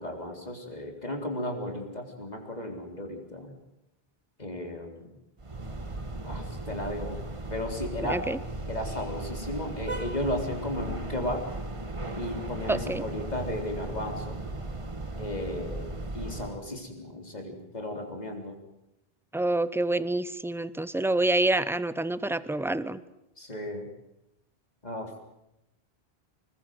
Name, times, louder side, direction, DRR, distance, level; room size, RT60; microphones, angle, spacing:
voice 1, 0.0-3.5 4.4-5.1 6.2-7.2 7.5-8.2 8.7-11.5 12.2-14.4 15.2-15.9 16.1-18.6 23.4-23.9 24.8-25.1, left 1 dB, 40° left, 3 dB, 4.1 m, -34 dB
sound 1, 5.4-16.6, right 2 dB, 30° right, 1.5 m, -37 dB
voice 2, 8.0-8.4 12.7-13.0 19.3-23.0, right 2 dB, 5° right, 15 dB, 0.7 m, -27 dB
26.0 x 20.5 x 7.8 m, 0.87 s
omnidirectional pair, 1.1 m